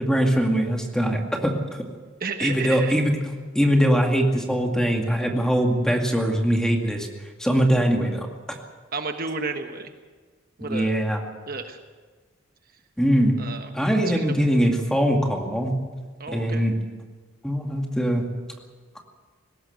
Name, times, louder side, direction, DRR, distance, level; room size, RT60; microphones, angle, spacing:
voice 1, 0.0-1.5 2.4-3.2 3.5-7.1 7.4-8.3 10.6-11.2 13.0-13.4 13.7-15.7 16.3-16.7 17.4-18.2 19.0-19.1, equal, 5° left, 2 dB, 2.2 m, -22 dB
voice 2, 2.2-2.9 8.9-9.9 10.6-10.9 11.5-11.8 13.4-13.7 14.1-14.3 16.2-16.6, right 4 dB, 45° right, 6 dB, 1.2 m, -31 dB
20.0 x 17.0 x 8.0 m, 1.4 s
head